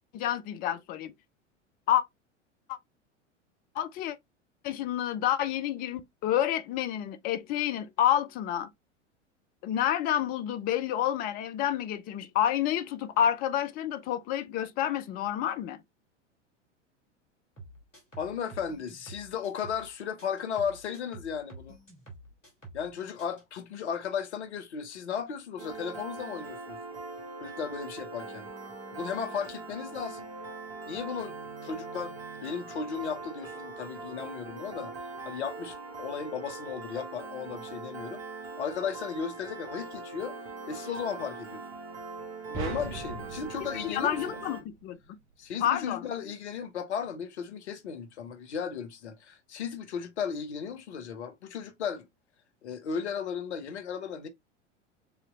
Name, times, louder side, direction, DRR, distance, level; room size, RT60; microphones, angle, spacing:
voice 1, 0.1-1.1 1.9-2.0 2.7-2.8 3.8-4.2 4.6-8.7 9.6-15.8 43.7-45.0 45.6-46.0, left 11 dB, 25° left, 0.4 m, -29 dB
sound 1, 17.6-19.9 20.2-22.9 23.2-23.4, right 2 dB, 90° left, 2.5 m, -49 dB
voice 2, 18.2-21.8 22.7-26.8 27.4-28.5 28.9-30.3 30.9-31.4 31.6-40.4 40.7-41.6 42.5-44.4 45.4-52.1 52.6-54.3, left 7 dB, 65° left, 1.0 m, -35 dB
Piano, 25.6-44.6, right 3 dB, 55° right, 2.0 m, -41 dB
sound 2, 42.5-45.0, right 5 dB, 35° right, 1.2 m, -40 dB
6.8 x 3.0 x 2.4 m
figure-of-eight pair, 85°, 37 cm